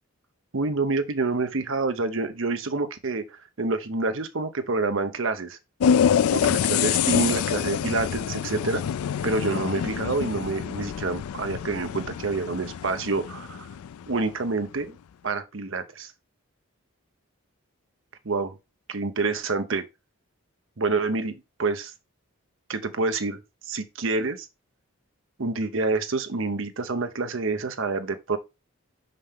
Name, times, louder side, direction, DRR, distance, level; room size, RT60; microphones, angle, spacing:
voice 1, 0.5-5.6 6.3-8.8 9.2-13.7 14.1-15.0 15.2-16.1 18.2-18.6 18.9-19.9 20.8-21.9 22.7-24.5 25.4-28.4, right 3 dB, 60° right, 0.8 m, -27 dB
sound 1, 5.8-14.2, left 8 dB, 80° left, 0.3 m, -26 dB
5.5 x 5.2 x 3.6 m
head